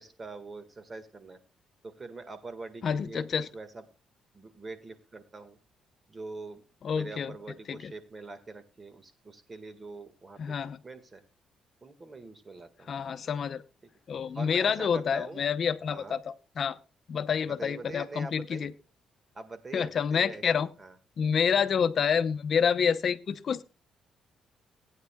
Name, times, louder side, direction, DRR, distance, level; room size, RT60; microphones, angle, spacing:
voice 1, 0.0-1.4 1.8-3.3 3.5-3.8 4.3-5.6 6.1-6.6 6.9-10.6 10.8-11.2 11.8-12.9 14.3-15.5 15.9-16.2 17.5-18.7 19.4-20.4 20.8-21.0, right 3 dB, 30° right, 9 dB, 1.8 m, -43 dB
voice 2, 2.8-3.5 6.8-7.3 7.7-7.9 10.4-10.8 12.9-13.6 14.1-16.8 17.1-18.7 19.7-20.7 21.2-23.6, left 7 dB, 55° left, 12 dB, 0.7 m, -28 dB
18.0 x 9.4 x 2.3 m, 0.31 s
cardioid pair, 90°, 0 cm